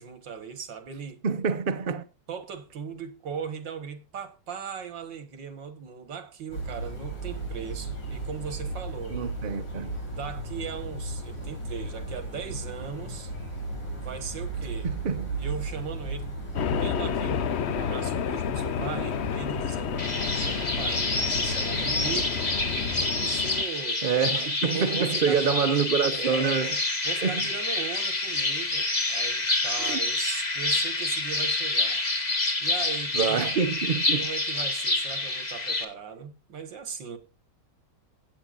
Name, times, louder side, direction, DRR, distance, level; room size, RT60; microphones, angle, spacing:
voice 1, 0.0-1.2 2.3-9.2 10.1-13.3 14.0-14.9 15.4-16.4 16.8-20.1 20.4-21.1 21.3-22.5 23.1-25.5 26.2-32.1 32.6-33.4 34.1-37.2, right 7 dB, 85° right, 2.3 m, -38 dB
voice 2, 1.2-2.0 9.1-10.0 14.8-15.3 24.0-26.8 27.2-27.5 29.8-30.0 33.1-34.3, right 6 dB, 40° right, 0.8 m, -26 dB
sound 1, 6.5-23.1, right 2 dB, 85° left, 6.0 m, -36 dB
sound 2, 16.5-23.6, left 8 dB, 60° left, 0.7 m, -30 dB
sound 3, 20.0-35.8, left 2 dB, 25° left, 1.5 m, -28 dB
16.0 x 8.8 x 2.5 m
omnidirectional pair, 1.9 m